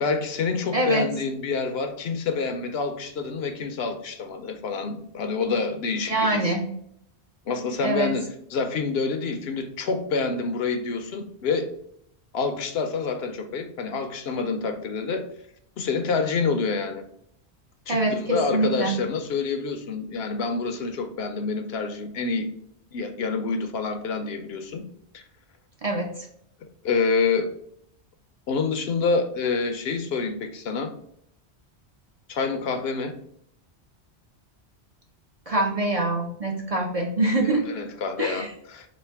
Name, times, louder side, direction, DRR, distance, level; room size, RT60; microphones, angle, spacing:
voice 1, 0.0-6.5 7.5-11.7 12.3-15.3 15.8-17.1 17.9-22.5 22.9-24.8 25.1-25.2 26.8-27.5 28.5-30.9 32.3-33.2 37.4-38.9, left 4 dB, 70° left, 8 dB, 0.8 m, -27 dB
voice 2, 0.7-1.1 6.1-6.6 7.8-8.1 17.9-19.0 25.8-26.1 35.5-37.6 38.2-38.5, right 2 dB, 40° right, 0 dB, 0.6 m, -24 dB
4.2 x 2.5 x 4.5 m, 0.70 s
omnidirectional pair, 1.1 m